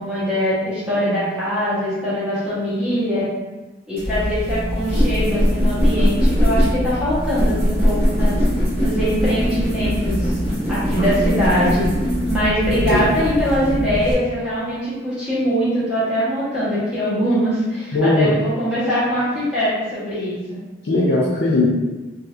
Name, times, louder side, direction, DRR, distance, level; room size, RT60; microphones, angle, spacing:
voice 1, 0.0-3.3 3.9-8.4 8.8-10.4 10.7-11.9 12.3-20.6, equal, 5° right, -13 dB, 1.1 m, -22 dB
sound 1, 4.0-14.1, equal, 35° right, 1.0 m, -21 dB
voice 2, 12.7-13.0 17.9-18.3 20.8-21.7, left 2 dB, 65° left, -6 dB, 0.5 m, -18 dB
3.3 x 2.7 x 2.4 m, 1.2 s
head